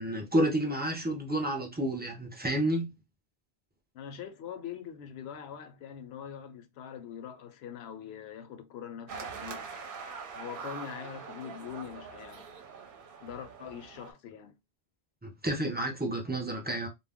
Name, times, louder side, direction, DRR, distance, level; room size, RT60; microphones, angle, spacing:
voice 1, 0.0-2.9 15.2-16.9, right 1 dB, 15° right, 0.3 m, -30 dB
voice 2, 3.9-9.7 10.3-12.5 13.2-14.5, left 8 dB, 75° left, 0.8 m, -43 dB
sound 1, 9.1-14.1, right 5 dB, 60° right, 0.7 m, -43 dB
2.3 x 2.1 x 3.4 m
omnidirectional pair, 1.1 m